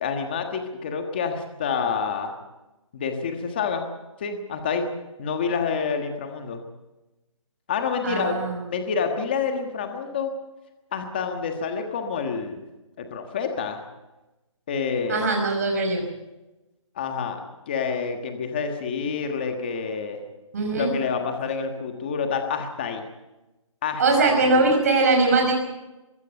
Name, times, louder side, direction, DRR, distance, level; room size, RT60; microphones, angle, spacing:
voice 1, 0.0-2.3 2.9-3.9 4.2-4.9 5.2-6.6 7.7-8.3 8.7-10.3 10.9-12.6 13.0-13.8 14.7-15.3 16.9-17.4 17.7-20.2 20.8-23.0 23.8-24.6, left 5 dB, 20° left, 5 dB, 1.4 m, -28 dB
voice 2, 8.0-8.6 15.1-16.0 20.5-20.9 24.0-25.5, right 3 dB, 30° right, 2 dB, 5.4 m, -21 dB
22.5 x 16.0 x 8.1 m, 1.1 s
hypercardioid pair, 175°, 17 cm